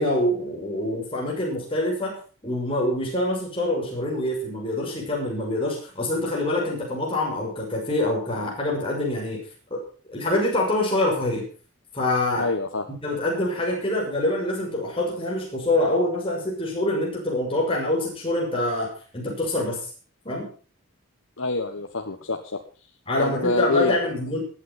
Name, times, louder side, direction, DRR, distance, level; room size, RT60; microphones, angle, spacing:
voice 1, 0.0-2.2 2.4-9.4 9.7-9.8 10.1-11.4 11.9-12.5 13.0-19.8 20.2-20.5 23.1-24.4, left 1 dB, 25° left, -2 dB, 6.2 m, -25 dB
voice 2, 12.4-12.9 21.4-22.6 23.2-24.0, left 3 dB, 80° left, 4 dB, 1.5 m, -26 dB
20.0 x 8.8 x 5.7 m, 0.39 s
head